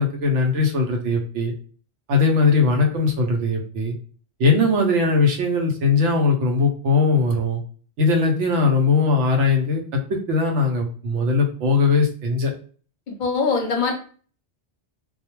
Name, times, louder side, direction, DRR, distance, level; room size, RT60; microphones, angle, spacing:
voice 1, 0.0-1.5 2.1-3.9 4.4-7.6 8.0-12.5, left 3 dB, 90° right, 2 dB, 0.9 m, -20 dB
voice 2, 13.1-13.9, left 5 dB, 50° left, 2 dB, 0.7 m, -22 dB
2.3 x 2.1 x 2.9 m, 0.41 s
omnidirectional pair, 1.2 m